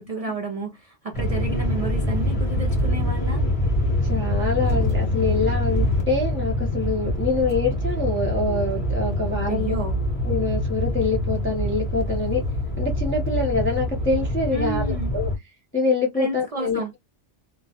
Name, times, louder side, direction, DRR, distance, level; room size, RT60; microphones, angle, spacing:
voice 1, 0.0-3.4 9.5-10.0 14.5-15.1 16.2-16.9, right 3 dB, 55° right, 0.4 m, -31 dB
sound 1, 1.1-15.4, left 1 dB, 30° left, 0.9 m, -25 dB
voice 2, 4.1-9.7 10.2-12.4 12.8-15.3 15.7-16.8, left 3 dB, 15° left, 0.5 m, -25 dB
2.2 x 2.0 x 2.7 m
omnidirectional pair, 1.2 m